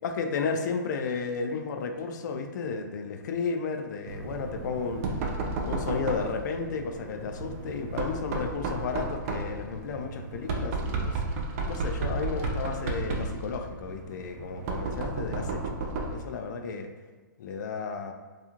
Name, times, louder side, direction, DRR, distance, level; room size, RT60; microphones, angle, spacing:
voice 1, 0.0-5.3 5.7-11.2 11.7-15.7 16.1-16.9 17.4-18.1, left 5 dB, 65° left, 5 dB, 0.4 m, -33 dB
Knock, 4.1-16.3, right 3 dB, 45° right, 0.4 m, -33 dB
2.4 x 2.4 x 2.9 m, 1.3 s
hypercardioid pair, 140°, 10 cm